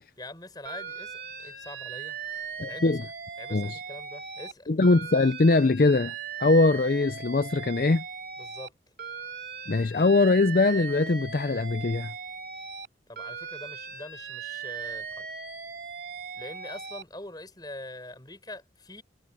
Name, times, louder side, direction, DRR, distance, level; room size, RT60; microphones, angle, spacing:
voice 1, 0.2-2.2 2.7-3.0 3.4-4.7 8.4-8.7 13.1-15.3 16.4-19.0, left 1 dB, 20° left, 7.3 m, -44 dB
Alarm, 0.7-4.5 4.8-8.7 9.0-12.9 13.2-17.0, right 6 dB, 55° right, 3.4 m, -39 dB
voice 2, 2.6-3.0 3.5-3.8 4.7-6.1 6.4-8.0 9.7-12.1, left 3 dB, 50° left, 0.5 m, -22 dB
head